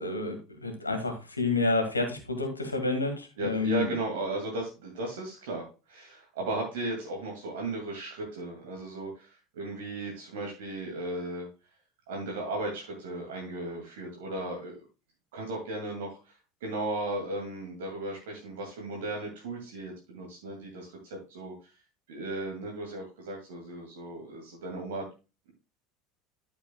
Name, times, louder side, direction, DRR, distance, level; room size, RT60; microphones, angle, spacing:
voice 1, 0.0-3.9, left 3 dB, 85° left, 5 dB, 1.8 m, -29 dB
voice 2, 3.4-11.5 12.1-14.8 15.3-16.3 16.6-21.5 22.1-25.1, right 2 dB, 65° right, 0 dB, 2.3 m, -36 dB
12.0 x 6.8 x 2.3 m, 0.30 s
figure-of-eight pair, 70°, 0 cm